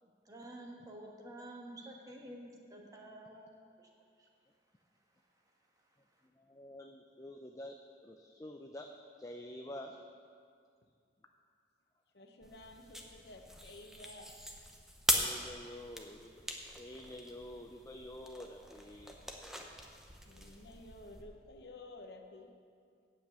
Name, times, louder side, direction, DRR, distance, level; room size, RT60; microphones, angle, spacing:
voice 1, 0.0-3.9 4.2-4.3 5.4-5.5, right 1 dB, 20° right, 0 dB, 1.3 m, -50 dB
voice 2, 6.3-8.9 9.2-10.0 15.1-16.4 16.8-19.2 19.6-19.9, left 1 dB, 20° left, 3 dB, 0.4 m, -48 dB
voice 3, 12.1-14.4 20.2-22.5, left 2 dB, 65° left, 4 dB, 0.9 m, -52 dB
sound 1, 12.4-21.2, equal, 5° right, 0.8 m, -41 dB
8.8 x 7.4 x 8.0 m, 2.3 s
head